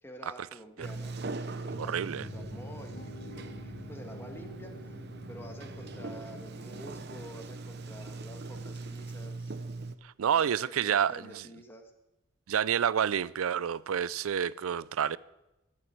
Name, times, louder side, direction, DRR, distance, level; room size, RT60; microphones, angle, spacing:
voice 1, 0.0-1.2 1.4-9.6 10.8-11.9, equal, 10° left, 1.5 m, -49 dB
Sliding door, 0.8-10.0, right 3 dB, 50° right, 0.7 m, -41 dB
sound 1, 1.7-6.7, left 2 dB, 45° left, 1.1 m, -47 dB
voice 2, 1.8-2.3 10.0-11.5 12.5-15.2, right 8 dB, 90° right, 0.4 m, -29 dB
12.0 x 7.6 x 9.6 m
head